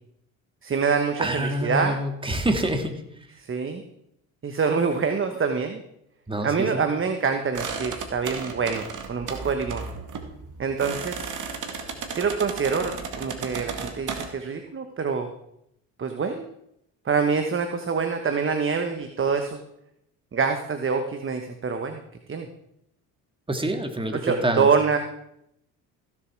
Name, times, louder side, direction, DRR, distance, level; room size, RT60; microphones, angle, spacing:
voice 1, 0.6-2.0 3.4-3.8 4.4-5.8 6.4-9.9 10.6-11.3 12.1-15.3 16.0-16.4 17.0-19.6 20.3-22.0 22.3-22.5 24.1-25.0, right 5 dB, 30° right, 6 dB, 1.2 m, -25 dB
voice 2, 1.2-3.0 6.3-6.9 23.5-24.7, right 1 dB, 15° right, 6 dB, 1.9 m, -26 dB
sound 1, 7.5-14.3, right 5 dB, 50° right, 2.0 m, -34 dB
15.5 x 7.2 x 4.7 m, 0.78 s
supercardioid pair, 70°, 39 cm